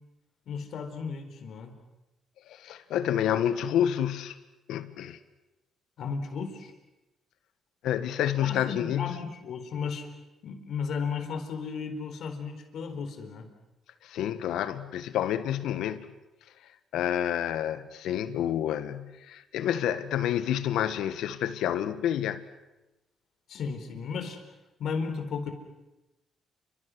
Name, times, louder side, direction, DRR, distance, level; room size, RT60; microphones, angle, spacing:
voice 1, 0.5-1.7 6.0-6.7 8.4-10.1 10.4-13.4 23.5-24.4 24.8-25.5, left 5 dB, 70° left, 4.3 m, -34 dB
voice 2, 2.5-4.4 4.7-5.2 7.8-9.2 14.0-16.1 16.9-22.4, left 10 dB, 85° left, 1.6 m, -29 dB
30.0 x 25.5 x 6.4 m
cardioid pair, 90°, 0 cm